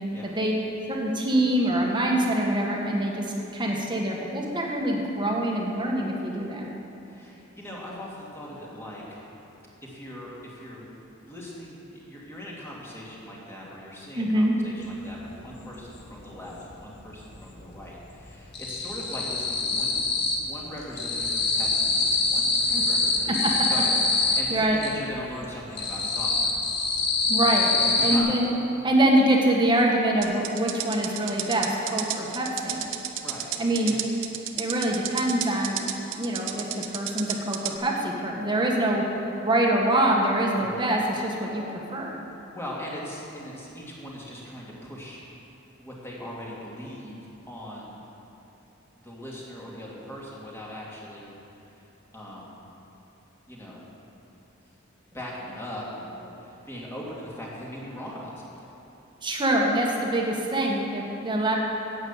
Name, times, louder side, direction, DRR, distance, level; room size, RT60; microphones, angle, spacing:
voice 1, 0.9-3.3 3.5-6.7 14.1-14.6 22.7-22.8 23.4-23.5 24.5-24.8 27.3-27.7 28.0-28.5 28.8-32.8 33.6-33.9 34.5-35.9 36.1-39.0 39.4-42.2 59.2-61.6, right 1 dB, 25° right, -1 dB, 1.6 m, -24 dB
voice 2, 7.1-9.3 9.8-10.9 11.2-26.8 27.7-28.3 33.2-33.5 33.8-34.0 40.5-40.8 42.5-45.2 45.8-47.2 47.5-48.0 49.0-51.4 51.6-51.9 52.1-52.7 53.5-53.8 55.1-58.5, equal, 15° left, -5 dB, 2.4 m, -40 dB
sound 1, 14.9-15.0 15.3-16.6 16.9-17.6 17.8-20.5 20.8-24.9 25.4-28.2, left 3 dB, 55° left, 1.6 m, -25 dB
sound 2, 30.2-37.8, right 10 dB, 65° right, 0.8 m, -32 dB
11.0 x 8.8 x 7.4 m, 2.9 s
head